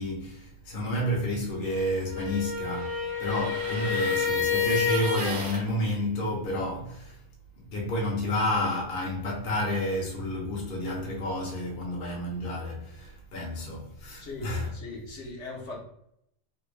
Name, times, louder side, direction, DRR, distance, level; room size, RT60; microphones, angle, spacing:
voice 1, 0.0-7.2 7.7-14.7, left 1 dB, 45° left, 0.9 m, -30 dB
sound 1, 2.0-5.6, left 5 dB, 60° right, 0.9 m, -28 dB
voice 2, 14.2-15.8, left 3 dB, 65° left, 1.1 m, -39 dB
3.4 x 2.2 x 3.1 m
omnidirectional pair, 1.4 m